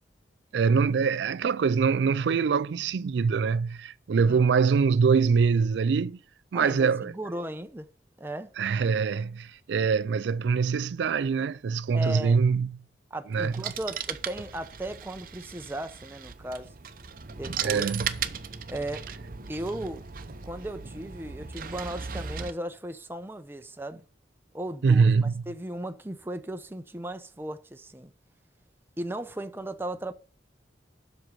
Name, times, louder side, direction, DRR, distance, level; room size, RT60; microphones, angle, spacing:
voice 1, 0.5-6.2 6.5-7.1 8.6-12.7 13.3-13.5 17.6-18.1 24.8-25.4, right 5 dB, 75° right, 0.4 m, -24 dB
voice 2, 6.5-7.9 8.2-8.5 11.9-12.4 13.1-16.7 17.3-17.9 18.7-19.0 19.5-20.1 20.4-24.0 24.5-28.1 29.0-30.1, right 1 dB, 10° right, 0.7 m, -36 dB
sound 1, 13.3-22.5, right 6 dB, 50° right, 0.7 m, -37 dB
7.8 x 6.4 x 7.1 m
head